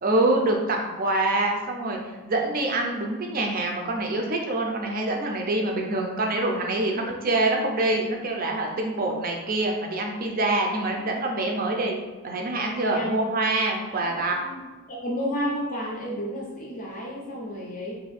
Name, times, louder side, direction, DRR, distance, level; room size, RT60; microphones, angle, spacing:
voice 1, 0.0-12.0 12.2-14.4, right 2 dB, 40° right, 1 dB, 0.4 m, -25 dB
voice 2, 12.8-13.2 13.9-14.6 14.9-17.9, equal, 35° left, -3 dB, 0.5 m, -32 dB
2.6 x 2.5 x 4.1 m, 1.2 s
head